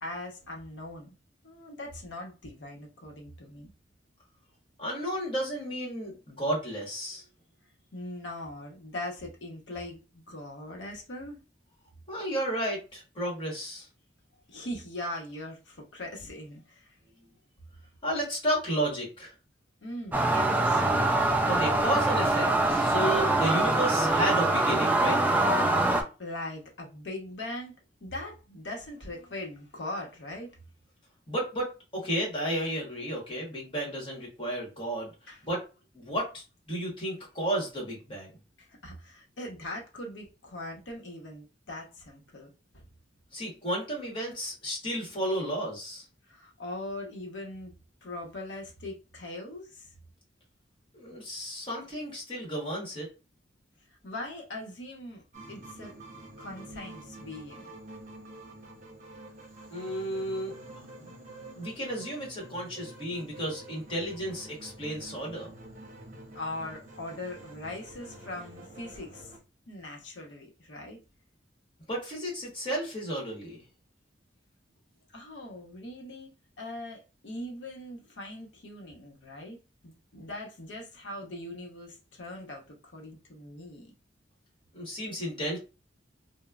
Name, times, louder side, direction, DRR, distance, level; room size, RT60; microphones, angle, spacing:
voice 1, 0.0-1.1 1.4-3.7 7.9-11.4 14.5-17.0 19.8-21.1 26.2-27.8 28.0-30.6 35.3-35.4 38.6-42.9 46.3-47.7 48.0-49.9 54.0-55.9 56.4-57.7 66.3-69.3 69.7-71.0 75.1-79.6 79.8-83.9, left 1 dB, 75° left, 0.9 m, -41 dB
voice 2, 4.8-7.2 12.1-13.9 18.0-19.3 21.5-25.2 31.3-35.1 35.4-35.6 35.9-38.3 43.3-46.0 50.9-53.1 59.7-60.5 61.0-61.1 61.6-65.5 71.9-73.6 84.7-85.6, right 1 dB, 30° left, 1.4 m, -32 dB
sound 1, 20.1-26.0, right 2 dB, 10° right, 0.3 m, -24 dB
sound 2, 55.3-69.4, right 1 dB, 45° right, 0.8 m, -48 dB
3.0 x 2.2 x 2.3 m
head